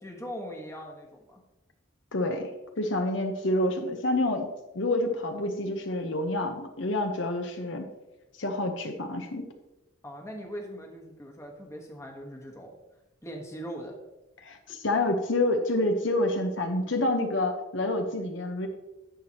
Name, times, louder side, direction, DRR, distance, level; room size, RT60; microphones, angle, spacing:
voice 1, 0.0-1.4 10.0-12.7 13.2-14.0, equal, 15° left, 0 dB, 1.2 m, -40 dB
voice 2, 2.1-2.5 2.8-4.5 4.7-7.9 8.4-9.5 14.4-18.7, left 1 dB, 70° left, 5 dB, 0.9 m, -28 dB
10.5 x 7.9 x 2.9 m, 1.0 s
head